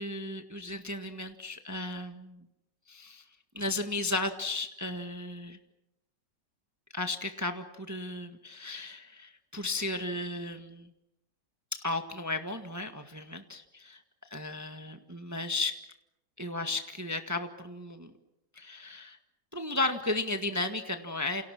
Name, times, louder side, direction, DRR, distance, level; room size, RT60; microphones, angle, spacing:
voice 1, 0.0-2.5 2.9-3.2 3.5-5.6 6.9-10.9 11.7-14.0 14.3-15.7 16.4-18.1 18.5-19.2 19.5-21.4, left 2 dB, 10° right, 6 dB, 1.5 m, -34 dB
29.0 x 29.0 x 6.1 m, 0.85 s
omnidirectional pair, 1.9 m